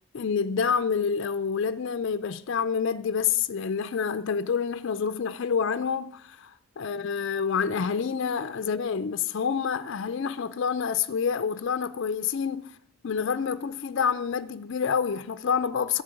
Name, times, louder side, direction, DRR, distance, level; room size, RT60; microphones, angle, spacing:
voice 1, 0.1-12.7 13.0-16.0, left 6 dB, 55° left, 0.4 m, -28 dB
11.5 x 7.6 x 7.9 m
head